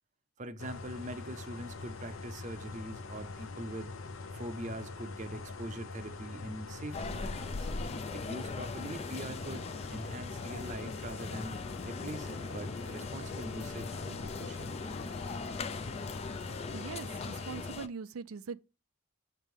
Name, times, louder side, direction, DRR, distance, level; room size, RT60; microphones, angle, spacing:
voice 1, 0.4-4.0 4.3-7.7 8.1-14.7, right 1 dB, 35° right, 0.6 m, -43 dB
sound 1, 0.6-17.7, left 3 dB, 75° left, 0.8 m, -43 dB
sound 2, 6.9-17.9, left 4 dB, 30° left, 0.3 m, -40 dB
voice 2, 16.7-18.6, right 5 dB, 85° right, 0.4 m, -42 dB
7.4 x 3.2 x 5.2 m
head